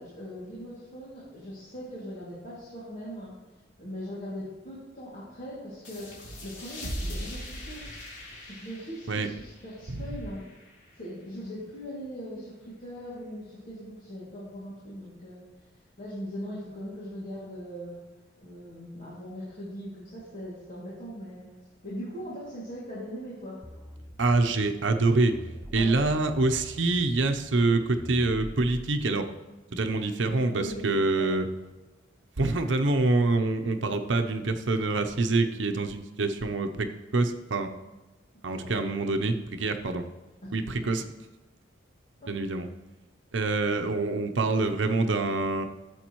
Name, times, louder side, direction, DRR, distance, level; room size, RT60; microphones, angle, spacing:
voice 1, 0.0-3.3 3.8-6.1 6.4-7.8 8.4-10.4 11.0-15.4 16.0-18.0 18.4-21.5 21.8-23.6 25.7-25.9 30.3-30.9 31.2-31.3 38.5-38.8 40.4-40.5 40.8-40.9 42.2-42.3, equal, 45° left, -9 dB, 2.5 m, -40 dB
sound 1, 5.8-11.1, equal, 80° left, 3.1 m, -40 dB
sound 2, 23.6-29.0, equal, 10° right, 0.6 m, -44 dB
voice 2, 24.2-25.4 25.7-29.3 29.7-31.4 32.4-37.7 38.4-40.0 40.5-41.0 42.3-42.7 43.3-45.7, right 3 dB, 85° right, 6 dB, 0.8 m, -26 dB
13.0 x 7.8 x 3.1 m, 1.1 s
head